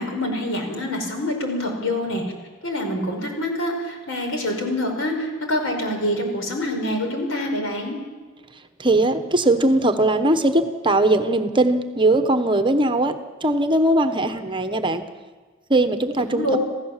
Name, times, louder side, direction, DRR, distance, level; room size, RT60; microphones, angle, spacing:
voice 1, 0.0-2.2 2.6-8.0 16.2-16.6, left 1 dB, 65° left, 3 dB, 5.1 m, -26 dB
voice 2, 8.8-13.2 13.4-15.0 15.7-16.6, right 2 dB, 25° right, 8 dB, 1.1 m, -20 dB
27.5 x 15.5 x 7.4 m, 1.4 s
head